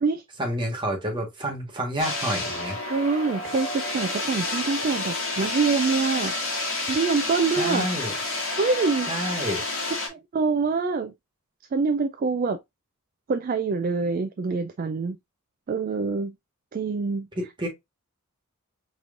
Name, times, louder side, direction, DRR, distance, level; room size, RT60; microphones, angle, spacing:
voice 1, 0.4-2.8 7.6-8.1 9.1-9.6 17.6-17.7, equal, 20° right, 1.3 m, -29 dB
sound 1, 2.0-10.1, left 2 dB, 65° left, 1.6 m, -29 dB
voice 2, 2.9-6.3 6.9-7.9 8.6-9.1 10.1-11.1 11.7-12.6 13.3-15.2 15.7-16.3 16.7-17.3, right 4 dB, 40° right, 0.3 m, -25 dB
5.1 x 3.1 x 2.5 m
head